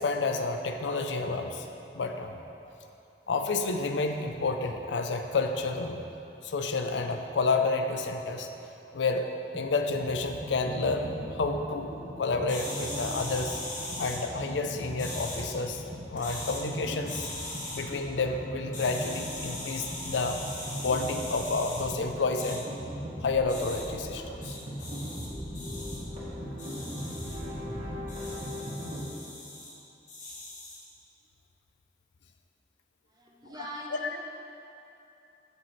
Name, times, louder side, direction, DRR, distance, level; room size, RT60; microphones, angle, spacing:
voice 1, 0.0-1.7 1.9-2.4 3.3-6.0 6.4-8.5 8.9-9.3 9.5-11.9 12.2-13.6 14.0-15.8 16.1-17.3 17.7-20.4 20.8-22.6 23.2-24.5 33.6-33.7, left 3 dB, 85° left, 6 dB, 0.5 m, -30 dB
sound 1, 9.5-29.1, equal, 40° right, 1.4 m, -39 dB
sound 2, 12.5-14.2 15.0-15.5 16.1-16.6 17.1-17.8 18.7-21.8 22.4-22.6 23.5-23.8 24.4-25.3 25.5-26.0 26.6-27.4 28.1-29.7 30.1-30.8, left 2 dB, 45° left, 1.3 m, -40 dB
voice 2, 33.1-34.2, equal, 20° right, -2 dB, 0.7 m, -42 dB
8.4 x 6.8 x 3.1 m, 2.8 s
head